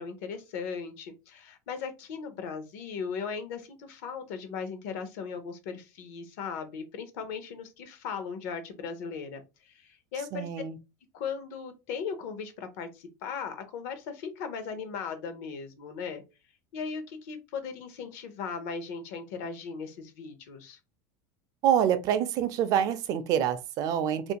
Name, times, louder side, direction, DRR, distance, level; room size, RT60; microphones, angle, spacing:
voice 1, 0.0-10.5 11.1-16.2 16.7-20.8, left 6 dB, 65° left, 0.7 m, -38 dB
voice 2, 10.3-10.8 21.6-24.3, right 9 dB, 45° right, 0.4 m, -26 dB
2.5 x 2.1 x 2.8 m
supercardioid pair, 140°, 9 cm